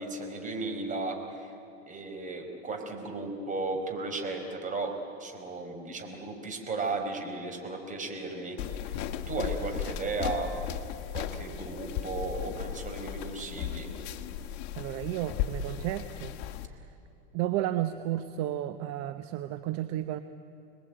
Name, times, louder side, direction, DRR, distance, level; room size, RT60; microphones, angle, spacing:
voice 1, 0.0-1.5 1.9-4.9 5.2-8.6 8.8-9.0 9.3-10.6 11.1-13.9, right 3 dB, 25° right, 4 dB, 4.8 m, -35 dB
sound 1, 8.6-16.7, left 9 dB, 55° left, 1.6 m, -36 dB
voice 2, 14.8-16.3 16.7-16.8 17.3-20.2, right 13 dB, 50° right, 10 dB, 1.1 m, -32 dB
26.5 x 20.5 x 9.2 m, 2.9 s
supercardioid pair, 120°, 32 cm